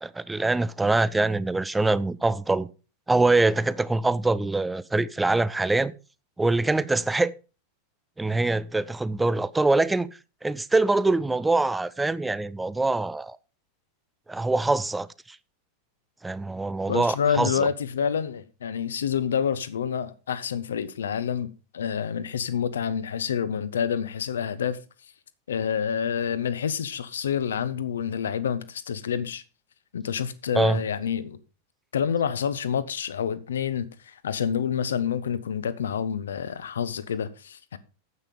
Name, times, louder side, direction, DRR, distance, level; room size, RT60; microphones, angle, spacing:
voice 1, 0.0-2.7 3.1-5.9 6.4-7.3 8.2-10.1 10.4-13.4 14.3-15.1 16.2-17.5 30.5-30.8, right 2 dB, 10° right, 0.6 m, -24 dB
voice 2, 16.9-24.8 25.5-29.4 29.9-31.4 31.9-37.8, left 7 dB, 65° left, 1.0 m, -28 dB
9.6 x 8.4 x 5.3 m
figure-of-eight pair, 90°, 0 cm